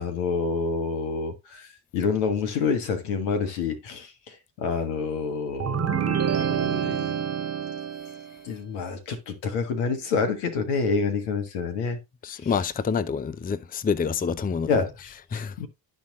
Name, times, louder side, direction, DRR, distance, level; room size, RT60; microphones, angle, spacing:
voice 1, 0.0-1.7 1.9-7.2 8.4-12.0 14.7-15.7, left 5 dB, 80° left, 1.6 m, -28 dB
sound 1, 5.6-8.4, right 8 dB, 35° right, 0.8 m, -27 dB
voice 2, 12.2-14.7 15.3-15.5, left 6 dB, 20° left, 0.5 m, -27 dB
12.5 x 4.1 x 2.7 m
hypercardioid pair, 45°, 48 cm